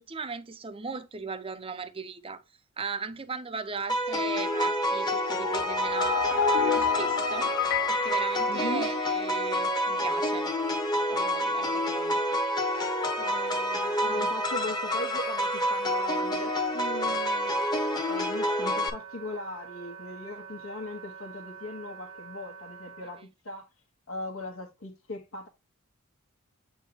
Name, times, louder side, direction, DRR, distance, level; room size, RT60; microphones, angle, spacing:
voice 1, 0.0-2.4 2.8-7.5 7.9-10.5 11.1-12.2 12.7-12.9 13.2-14.3, right 4 dB, 25° right, 0.6 m, -38 dB
sound 1, 3.9-18.9, equal, 20° left, 1.0 m, -28 dB
sound 2, 5.4-9.3, left 8 dB, 55° left, 0.4 m, -29 dB
voice 2, 8.5-8.9 14.0-17.6 18.0-23.7 24.1-25.5, left 2 dB, 70° left, 1.2 m, -39 dB
Wind instrument woodwind instrument, 11.8-23.2, right 7 dB, 80° right, 1.0 m, -46 dB
8.1 x 4.5 x 2.8 m
head